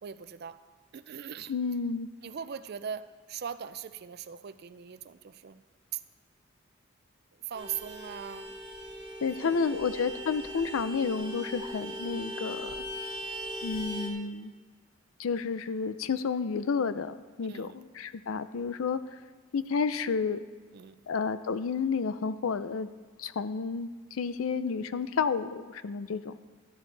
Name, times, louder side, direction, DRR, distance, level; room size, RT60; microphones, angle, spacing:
voice 1, 0.0-0.6 0.9-1.5 2.2-5.6 5.9-6.0 7.4-8.5 9.3-9.7 17.4-17.8 20.7-21.0, right 8 dB, 50° right, 13 dB, 0.4 m, -40 dB
voice 2, 1.5-2.1 9.2-12.8 13.6-14.5 15.2-19.0 19.5-20.4 21.1-22.9 23.2-26.4, left 5 dB, 85° left, 13 dB, 0.5 m, -31 dB
Vehicle horn car horn honking, 7.5-14.1, equal, 25° right, 1.3 m, -39 dB
12.5 x 11.0 x 3.3 m, 1.4 s
head